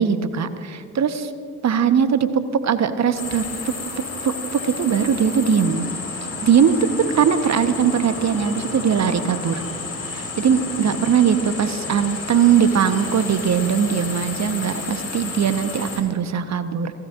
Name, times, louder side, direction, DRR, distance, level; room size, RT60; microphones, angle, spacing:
voice 1, 0.0-1.3 1.6-5.9 6.4-9.6 10.1-16.9, right 7 dB, 35° right, 10 dB, 1.2 m, -20 dB
sound 1, 3.1-16.0, left 3 dB, 30° left, 4.4 m, -31 dB
29.5 x 18.0 x 2.6 m, 2.2 s
figure-of-eight pair, 55°, 44 cm